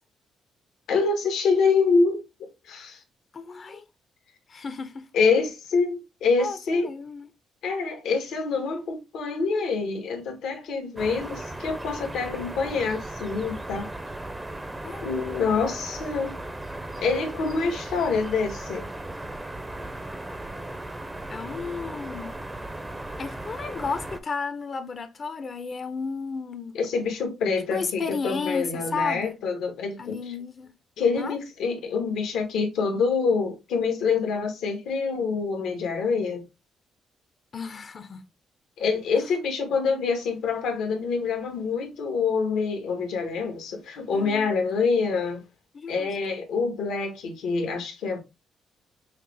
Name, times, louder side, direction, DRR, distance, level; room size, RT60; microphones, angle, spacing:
voice 1, 0.9-3.0 5.1-6.9 7.6-13.9 15.0-16.4 17.0-18.8 26.7-30.3 31.0-36.4 38.8-45.4 45.9-48.2, left 4 dB, 80° left, 1.3 m, -26 dB
voice 2, 3.3-3.8 4.5-5.1 6.4-7.3 14.8-15.1 21.3-22.4 23.2-26.8 27.7-29.4 30.0-30.7 31.2-31.4 37.5-38.2 44.1-44.5 45.7-46.1, left 4 dB, 45° left, 0.6 m, -33 dB
sound 1, 11.0-24.2, right 1 dB, 15° right, 0.6 m, -37 dB
5.6 x 2.0 x 3.3 m
cardioid pair, 90°, 0 cm